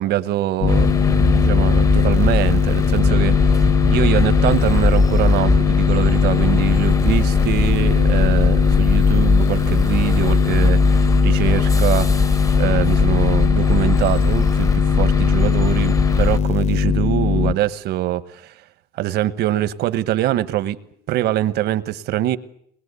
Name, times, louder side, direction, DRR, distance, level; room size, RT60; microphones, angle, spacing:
voice 1, 0.0-12.1 12.6-18.5 19.0-20.8 21.1-22.4, right 13 dB, 75° right, 1.2 m, -23 dB
sound 1, 0.6-17.5, left 6 dB, 40° left, 1.1 m, -19 dB
sound 2, 0.7-16.4, left 3 dB, 20° left, 0.9 m, -21 dB
22.5 x 20.5 x 8.3 m
cardioid pair, 110°, 17 cm